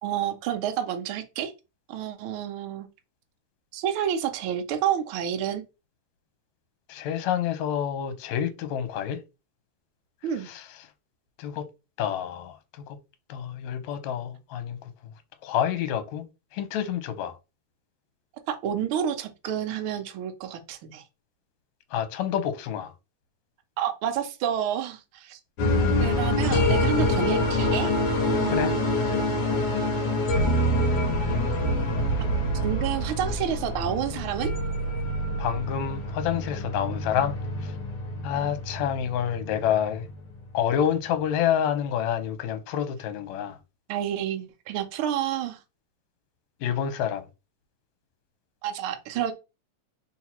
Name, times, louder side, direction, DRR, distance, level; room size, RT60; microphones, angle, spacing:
voice 1, 0.0-1.5 1.9-2.9 3.7-5.6 10.2-10.5 18.5-21.0 23.8-25.4 26.0-27.9 28.3-29.0 32.6-34.5 38.3-38.5 43.9-45.6 48.6-49.3, right 9 dB, 80° right, 1.2 m, -29 dB
voice 2, 6.9-9.2 10.5-10.6 11.4-11.6 12.0-12.5 13.3-14.8 15.4-16.2 16.5-17.3 21.9-22.9 28.5-28.7 35.4-37.3 38.2-40.1 40.5-43.6 46.6-47.2, left 9 dB, 75° left, 2.0 m, -28 dB
sound 1, 25.6-40.7, left 1 dB, 60° left, 1.7 m, -26 dB
4.3 x 2.8 x 4.3 m
omnidirectional pair, 3.4 m